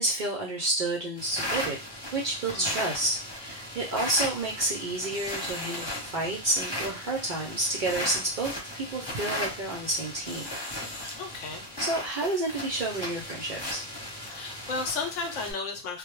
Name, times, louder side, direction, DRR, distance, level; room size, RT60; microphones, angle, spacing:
voice 1, 0.0-1.8 2.1-10.5 11.8-13.8, right 2 dB, 60° right, -2 dB, 0.5 m, -30 dB
sound 1, 1.2-15.5, left 1 dB, 20° left, 1.0 m, -36 dB
voice 2, 11.1-11.7 14.3-16.0, left 4 dB, 75° left, 5 dB, 1.0 m, -34 dB
2.2 x 2.0 x 3.0 m, 0.26 s
omnidirectional pair, 1.3 m